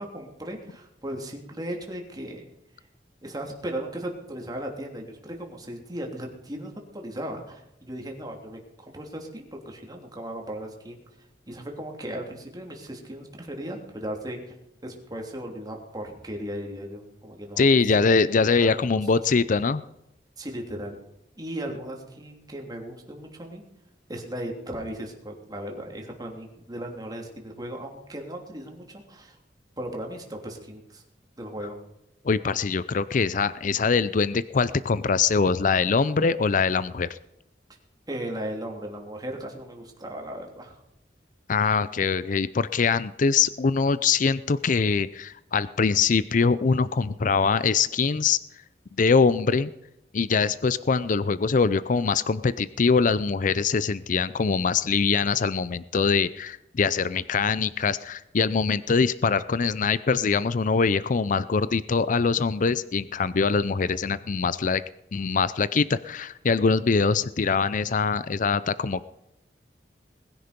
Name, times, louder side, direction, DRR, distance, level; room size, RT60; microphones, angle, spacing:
voice 1, 0.0-2.4 3.2-11.0 11.5-14.5 14.8-17.7 18.6-19.2 20.4-20.9 21.4-23.6 24.1-29.4 29.8-31.0 31.4-31.8 38.1-40.8, right 1 dB, 25° right, 1 dB, 3.1 m, -36 dB
voice 2, 17.6-19.8 32.2-37.2 41.5-48.4 49.0-49.7 50.1-64.8 65.1-69.0, left 5 dB, 50° left, 16 dB, 0.5 m, -23 dB
20.5 x 10.5 x 5.2 m, 0.86 s
head